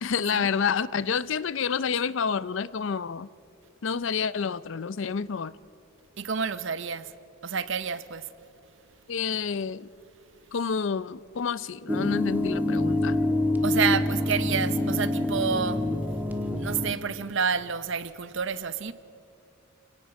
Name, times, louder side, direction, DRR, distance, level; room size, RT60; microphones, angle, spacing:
voice 1, 0.0-3.3 3.8-5.6 9.1-9.9 10.5-13.2, left 6 dB, 60° left, 0.5 m, -29 dB
voice 2, 6.2-7.1 7.4-8.3 13.6-15.9 16.6-18.9, right 6 dB, 60° right, 0.8 m, -29 dB
sound 1, 11.9-16.9, left 1 dB, 10° right, 1.3 m, -26 dB
29.5 x 17.5 x 5.9 m
head